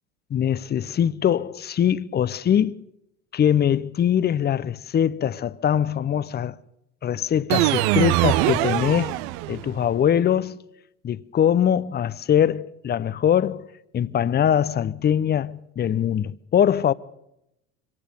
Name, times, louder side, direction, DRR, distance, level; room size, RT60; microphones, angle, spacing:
voice 1, 0.3-2.8 3.3-6.5 7.0-9.1 9.5-10.6 11.0-13.6 13.9-16.9, left 9 dB, 25° left, 0.8 m, -22 dB
sound 1, 7.5-9.8, right 18 dB, 65° right, 0.8 m, -22 dB
24.5 x 18.5 x 6.8 m
hypercardioid pair, 75°, 37 cm